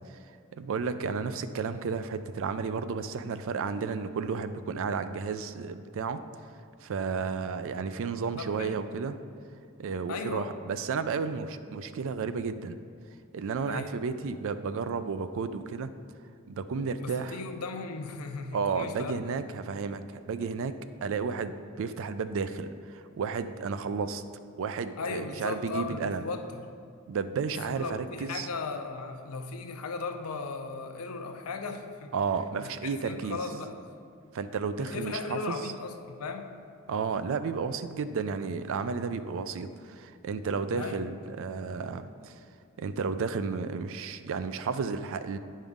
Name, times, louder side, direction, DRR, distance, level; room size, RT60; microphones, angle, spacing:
voice 1, 0.5-6.2 6.8-9.2 9.8-12.8 13.3-15.9 16.5-17.4 18.5-20.7 21.0-24.2 24.6-26.2 27.1-28.5 32.1-33.4 34.3-35.6 36.9-42.3 42.8-45.4, right 5 dB, 65° right, 11 dB, 0.4 m, -32 dB
voice 2, 8.4-8.8 10.1-10.5 13.7-13.9 17.0-19.2 25.0-26.7 27.8-32.1 32.6-33.8 34.8-36.6 40.7-41.1, left 4 dB, 85° left, 6 dB, 0.6 m, -37 dB
8.8 x 5.5 x 3.6 m, 2.4 s
head